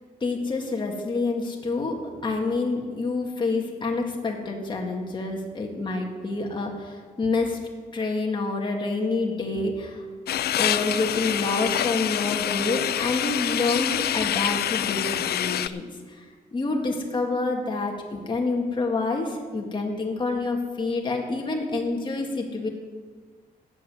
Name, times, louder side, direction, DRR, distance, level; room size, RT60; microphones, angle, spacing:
voice 1, 0.2-7.6 7.9-10.0 10.5-16.2 16.5-22.7, left 3 dB, 30° left, 0 dB, 1.9 m, -27 dB
sound 1, 10.3-15.7, left 11 dB, 90° left, 0.5 m, -26 dB
13.0 x 8.2 x 8.1 m, 1.5 s
wide cardioid pair, 160°, 16 cm